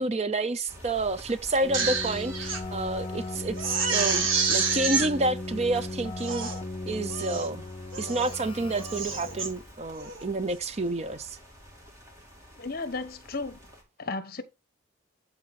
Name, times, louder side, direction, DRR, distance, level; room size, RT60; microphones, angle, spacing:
voice 1, 0.0-6.5 6.9-7.6 8.0-11.4, right 2 dB, 30° right, 0.5 m, -29 dB
sound 1, 0.7-13.8, equal, 15° right, 2.9 m, -49 dB
Crying sobbing, 1.5-2.6 3.0-3.1 3.6-5.1 5.7-5.8 6.2-6.6 7.1-7.5 7.9-8.4 8.7-9.5 10.0-10.2, right 5 dB, 70° right, 2.1 m, -28 dB
Keyboard (musical), 1.6-9.7, left 2 dB, 25° left, 0.5 m, -37 dB
voice 2, 12.6-13.6 14.0-14.4, left 3 dB, 45° left, 1.1 m, -34 dB
12.5 x 4.2 x 4.1 m
head